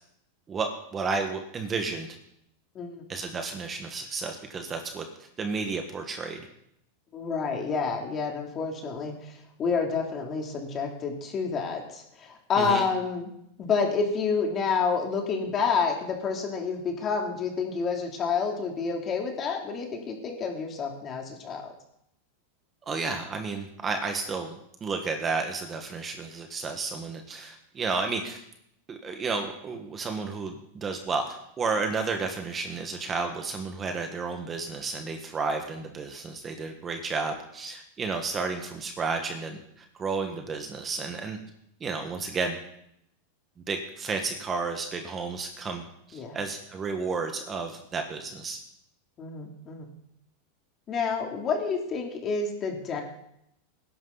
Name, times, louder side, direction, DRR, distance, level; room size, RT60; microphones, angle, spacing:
voice 1, 0.5-2.2 3.1-5.0 5.4-6.5 12.6-12.8 22.9-28.4 28.9-41.4 41.8-42.6 43.7-48.6, right 4 dB, 20° right, 4 dB, 1.6 m, -32 dB
voice 2, 7.1-9.3 9.6-13.3 13.6-21.7 46.1-46.4 49.2-49.9 50.9-53.0, left 5 dB, 30° left, 1 dB, 3.1 m, -29 dB
19.0 x 11.0 x 4.1 m, 0.75 s
supercardioid pair, 135°, 0 cm